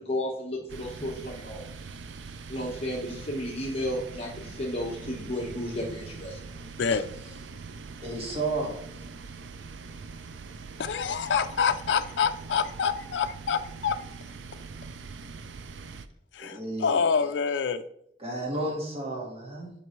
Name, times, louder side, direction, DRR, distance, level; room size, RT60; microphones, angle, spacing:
voice 1, 0.0-1.7 2.5-6.4, equal, 35° left, -3 dB, 1.3 m, -33 dB
sound 1, 0.7-16.1, right 4 dB, 85° right, 0.5 m, -43 dB
voice 2, 8.0-9.1 16.4-17.0 18.2-19.7, right 2 dB, 35° right, -1 dB, 1.7 m, -32 dB
voice 3, 10.8-14.0 16.3-17.8, left 6 dB, 70° left, 8 dB, 0.4 m, -27 dB
11.0 x 5.2 x 3.2 m, 0.75 s
head